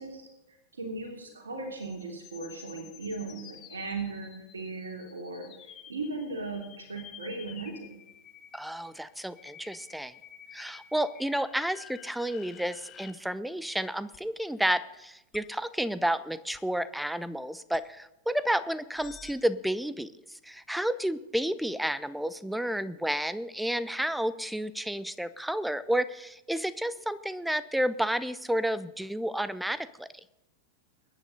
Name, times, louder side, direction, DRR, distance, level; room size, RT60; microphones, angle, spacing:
voice 1, 0.0-8.0, right 3 dB, 75° right, 3 dB, 3.0 m, -38 dB
sound 1, 1.8-13.1 14.1-14.2 15.3-15.4 16.5-16.6 17.7-17.8 18.9-19.3, left 9 dB, 30° left, 1.3 m, -51 dB
voice 2, 8.5-10.1 10.5-30.1, right 1 dB, ahead, 16 dB, 0.7 m, -31 dB
22.5 x 10.0 x 4.0 m, 0.92 s
figure-of-eight pair, 90°, 0 cm